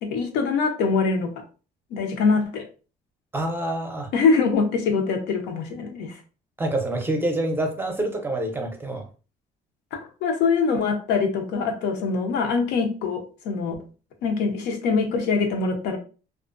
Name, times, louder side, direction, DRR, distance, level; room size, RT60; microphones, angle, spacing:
voice 1, 0.0-1.4 1.9-2.7 4.1-6.2 9.9-13.8 14.2-16.0, left 4 dB, 85° left, 0.6 m, -23 dB
voice 2, 3.3-4.1 6.6-9.1, right 1 dB, 15° right, 0.5 m, -26 dB
2.4 x 2.1 x 2.4 m
cardioid pair, 110°, 17 cm